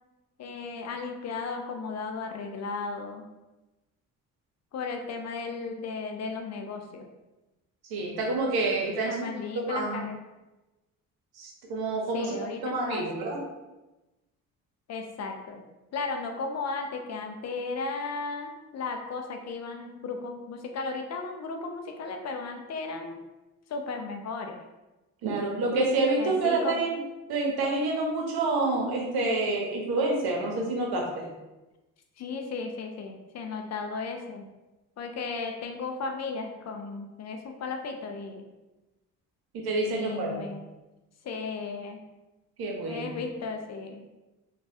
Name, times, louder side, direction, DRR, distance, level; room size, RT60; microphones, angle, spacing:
voice 1, 0.4-3.3 4.7-7.1 9.1-10.2 12.1-13.3 14.9-15.6 15.9-23.2 23.7-24.6 26.2-26.9 32.2-34.5 35.0-38.4 39.9-40.6 41.2-42.0 42.8-44.0, left 4 dB, 40° left, 4 dB, 0.5 m, -35 dB
voice 2, 7.9-9.2 9.5-10.0 11.4-12.3 12.6-13.4 25.2-27.0 27.3-31.3 39.5-40.4 42.6-43.1, right 2 dB, 65° right, -1 dB, 0.9 m, -28 dB
3.1 x 2.2 x 2.7 m, 1.1 s
hypercardioid pair, 55°, 41 cm